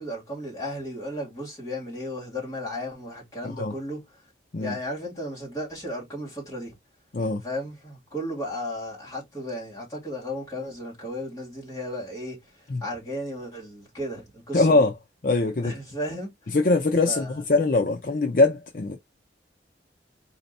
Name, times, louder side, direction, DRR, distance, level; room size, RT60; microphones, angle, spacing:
voice 1, 0.0-4.0 4.6-6.8 7.4-12.4 12.8-14.9 15.6-16.3 17.1-17.3, equal, 20° left, 2.4 m, -34 dB
voice 2, 3.4-3.7 4.5-4.8 7.1-7.4 12.7-12.8 14.5-14.9 15.2-15.8 16.5-19.0, left 3 dB, 50° left, 0.5 m, -22 dB
4.3 x 2.8 x 4.1 m
head